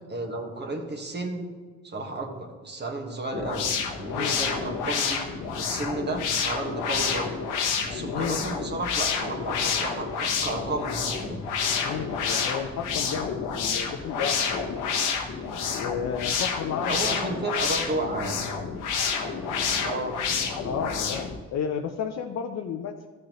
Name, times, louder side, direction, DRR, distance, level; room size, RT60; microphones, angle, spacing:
voice 1, 0.1-1.5 1.8-3.7 4.0-5.2 5.6-7.3 7.9-11.4 16.9-18.4 19.8-20.2, right 2 dB, 35° right, 2 dB, 1.7 m, -32 dB
sound 1, 3.3-21.4, left 6 dB, 90° left, 1.1 m, -29 dB
voice 2, 8.1-8.4 11.8-14.7 15.7-17.0 17.3-17.4 20.6-23.1, left 7 dB, 60° left, 3 dB, 0.7 m, -32 dB
14.0 x 6.4 x 3.1 m, 1.5 s
cardioid pair, 90°, 30 cm